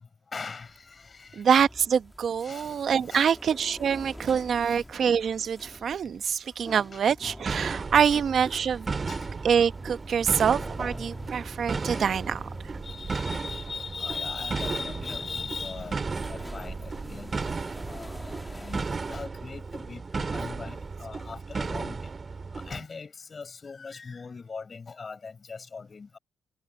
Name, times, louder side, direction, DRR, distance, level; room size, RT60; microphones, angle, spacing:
voice 1, 0.3-1.4 2.4-3.4 4.6-4.8 6.9-7.0 8.1-8.2 8.5-8.6 9.1-9.3 11.9-12.0 12.4-17.5 17.9-22.1 22.5-26.2, left 4 dB, 35° left, 6.4 m, -40 dB
sound 1, 0.6-19.3, equal, ahead, 2.3 m, -46 dB
voice 2, 1.4-8.8 9.4-12.4, right 7 dB, 55° right, 1.1 m, -25 dB
sound 2, 7.4-22.8, right 4 dB, 30° right, 3.1 m, -34 dB
cardioid pair, 90°, 0 cm